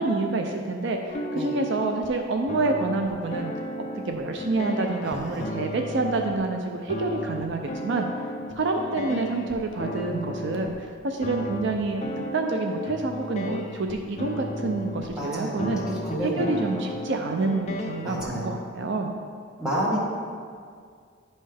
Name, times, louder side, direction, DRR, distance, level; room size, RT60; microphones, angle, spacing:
voice 1, 0.0-3.5 3.9-8.1 8.6-15.8 16.2-19.1, right 3 dB, 60° right, 3 dB, 0.5 m, -27 dB
sound 1, 1.1-2.1 2.5-6.4 6.9-10.7 11.2-15.2 15.6-18.3, left 1 dB, 30° left, 0.5 m, -34 dB
voice 2, 5.0-5.5 10.1-10.4 15.1-16.9 18.0-18.6 19.6-20.0, right 1 dB, 5° right, -7 dB, 1.5 m, -31 dB
10.0 x 5.4 x 3.4 m, 2.1 s
head